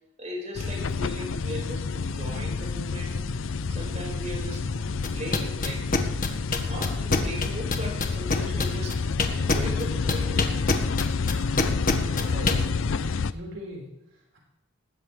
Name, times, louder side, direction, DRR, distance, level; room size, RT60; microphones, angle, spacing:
voice 1, 0.2-3.2 3.7-4.7 5.1-5.9 6.5-9.0 9.3-10.6, equal, 35° right, -3 dB, 5.1 m, -37 dB
sound 1, 0.6-13.3, left 4 dB, 70° left, 0.5 m, -29 dB
sound 2, 1.5-11.8, equal, 20° left, 7.0 m, -45 dB
sound 3, 5.0-12.6, left 3 dB, 40° left, 1.6 m, -24 dB
voice 2, 12.0-13.9, equal, 65° right, -2 dB, 5.1 m, -39 dB
19.5 x 16.5 x 3.4 m, 0.85 s
head